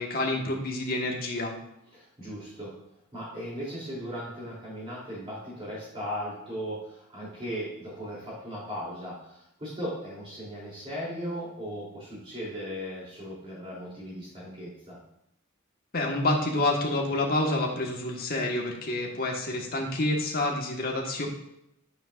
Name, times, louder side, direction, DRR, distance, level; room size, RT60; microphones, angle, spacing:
voice 1, 0.0-1.5 15.9-21.3, left 2 dB, 45° left, 0 dB, 1.6 m, -28 dB
voice 2, 1.9-2.7 3.1-15.0, equal, 25° right, -7 dB, 3.4 m, -37 dB
10.0 x 8.9 x 2.6 m, 0.79 s
head